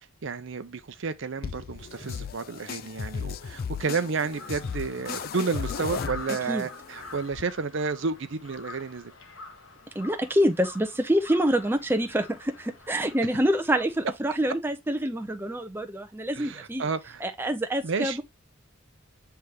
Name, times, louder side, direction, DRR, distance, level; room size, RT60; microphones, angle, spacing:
voice 1, 0.2-9.1 16.3-17.3 17.8-18.2, right 4 dB, 60° right, 0.6 m, -31 dB
sound 1, 1.4-7.4, left 6 dB, 45° left, 0.3 m, -36 dB
Crow, 4.3-14.1, left 3 dB, 70° left, 1.2 m, -46 dB
voice 2, 10.0-16.8 17.2-18.2, equal, 10° right, 0.5 m, -26 dB
7.9 x 3.4 x 3.4 m
head